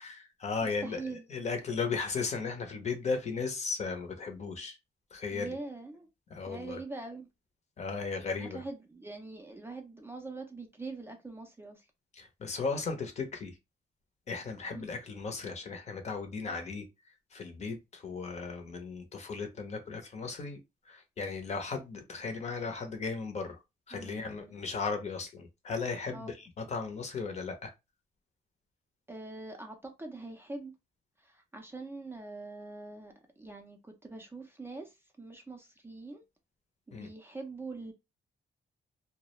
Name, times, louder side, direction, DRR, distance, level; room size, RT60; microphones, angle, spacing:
voice 1, 0.0-4.8 5.1-5.5 6.3-6.8 7.8-8.6 12.1-13.5 14.3-16.9 17.3-20.6 20.9-23.6 23.9-27.7 36.9-37.1, left 4 dB, 40° left, 0.6 m, -36 dB
voice 2, 0.6-1.3 5.3-6.1 6.5-7.3 8.4-11.8 14.7-14.8 23.9-24.6 26.1-26.3 29.1-30.7 31.2-36.2 36.9-37.9, right 3 dB, 15° right, 0.4 m, -43 dB
2.3 x 2.0 x 2.9 m
cardioid pair, 130°, 17 cm